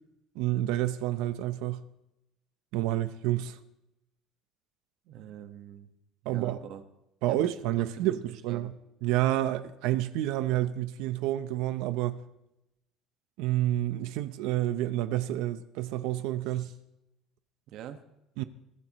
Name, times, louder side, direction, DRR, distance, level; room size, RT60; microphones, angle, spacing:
voice 1, 0.4-1.8 2.7-3.6 6.3-6.6 7.2-8.7 9.0-12.2 13.4-16.7 18.4-18.5, right 14 dB, 75° right, 0.8 m, -29 dB
voice 2, 5.0-5.9 6.2-6.8 7.3-8.2 8.5-8.7 16.5-16.8 17.7-18.0, right 10 dB, 55° right, 1.5 m, -45 dB
22.5 x 14.0 x 3.1 m
cardioid pair, 170°, 0 cm